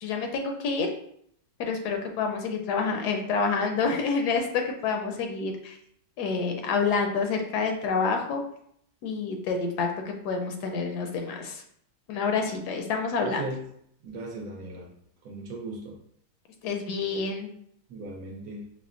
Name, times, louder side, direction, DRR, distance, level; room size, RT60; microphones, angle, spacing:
voice 1, 0.0-0.9 1.6-5.8 6.2-8.4 9.0-11.6 12.1-13.4 16.6-17.5, left 4 dB, 75° left, 4 dB, 1.1 m, -28 dB
voice 2, 13.2-13.6 14.0-14.9 15.2-15.9 17.9-18.7, right 2 dB, 65° right, 0 dB, 1.0 m, -37 dB
5.6 x 2.0 x 2.4 m, 0.68 s
omnidirectional pair, 1.8 m